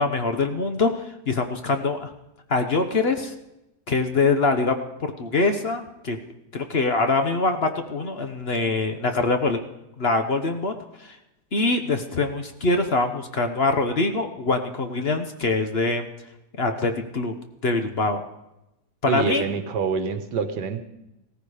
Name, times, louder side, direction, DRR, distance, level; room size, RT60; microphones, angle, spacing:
voice 1, 0.0-2.1 2.5-3.3 3.9-6.2 6.5-9.6 10.0-10.7 11.0-11.2 11.5-16.1 16.6-17.3 17.6-18.2 19.0-19.4, left 3 dB, 45° left, 6 dB, 1.0 m, -24 dB
voice 2, 19.1-20.8, right 6 dB, 85° right, 8 dB, 1.8 m, -26 dB
17.0 x 14.0 x 4.9 m, 0.90 s
omnidirectional pair, 1.8 m